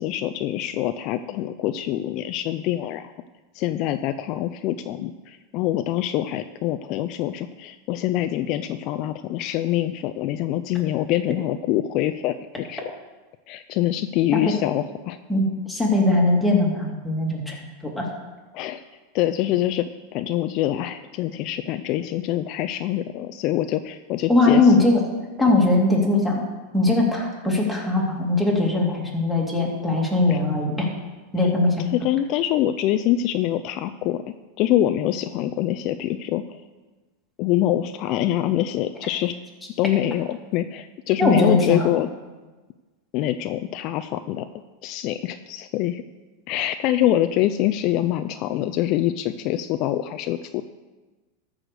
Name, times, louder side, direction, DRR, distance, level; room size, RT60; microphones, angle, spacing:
voice 1, 0.0-3.1 3.5-13.0 13.5-15.2 17.5-17.6 18.5-18.8 19.1-24.8 30.3-30.4 31.4-31.5 31.9-34.2 34.6-36.6 37.4-39.3 39.8-42.1 43.1-44.5 44.8-46.0 46.5-50.6, left 13 dB, 45° left, 10 dB, 0.4 m, -25 dB
voice 2, 15.3-17.5 17.8-18.1 24.3-25.0 25.4-26.4 26.7-30.9 31.3-31.8 41.2-41.9, left 2 dB, ahead, -3 dB, 2.4 m, -20 dB
13.5 x 5.0 x 6.6 m, 1.2 s
supercardioid pair, 135°, 0 cm